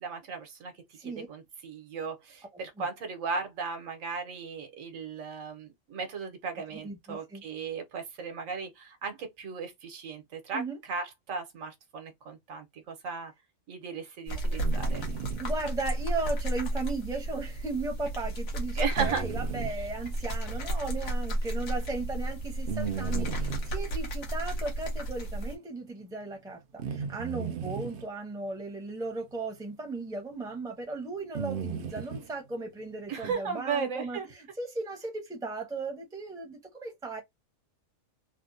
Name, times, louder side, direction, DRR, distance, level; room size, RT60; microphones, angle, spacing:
voice 1, 0.0-13.3 13.7-15.0 18.7-19.2 19.8-19.9 33.1-34.3, right 5 dB, 75° right, 1.2 m, -36 dB
voice 2, 6.8-7.4 10.5-10.8 14.4-14.5 15.4-26.6 26.9-37.2, right 3 dB, 5° right, 0.6 m, -36 dB
sound 1, 14.3-25.6, right 1 dB, 80° left, 1.4 m, -32 dB
sound 2, 14.6-15.4 19.0-19.7 22.7-23.7 26.8-28.1 30.0-30.1 31.3-32.3 33.2-33.3, right 7 dB, 60° right, 0.6 m, -35 dB
3.4 x 2.2 x 2.5 m
omnidirectional pair, 1.4 m